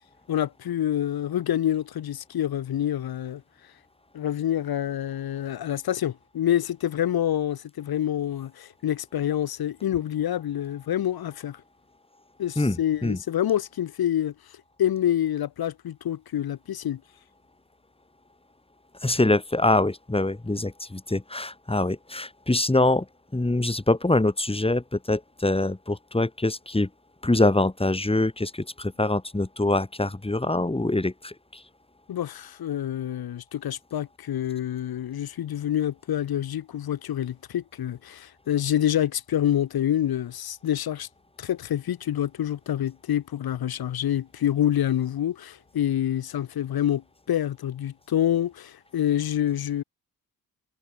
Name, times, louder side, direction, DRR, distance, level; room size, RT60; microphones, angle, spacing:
voice 1, 0.3-3.4 4.1-11.6 12.4-17.0 32.1-41.1 41.4-49.8, left 11 dB, 80° left, 2.3 m, -27 dB
voice 2, 12.6-13.2 19.0-23.1 23.3-26.9 27.2-31.6, left 2 dB, 15° left, 4.1 m, -24 dB
cardioid pair, 60°, 36 cm